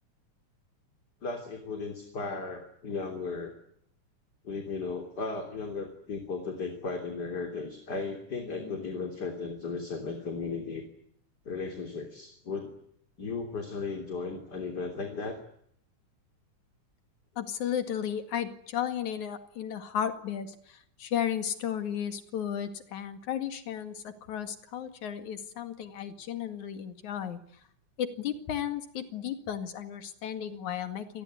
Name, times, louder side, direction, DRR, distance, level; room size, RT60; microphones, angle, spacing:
voice 1, 1.2-3.5 4.4-10.8 11.5-12.7 13.2-15.4, left 4 dB, 30° left, 5 dB, 3.7 m, -35 dB
voice 2, 17.4-27.4 28.0-31.2, left 9 dB, 70° left, 9 dB, 3.4 m, -34 dB
27.0 x 20.0 x 9.9 m, 0.70 s
omnidirectional pair, 3.6 m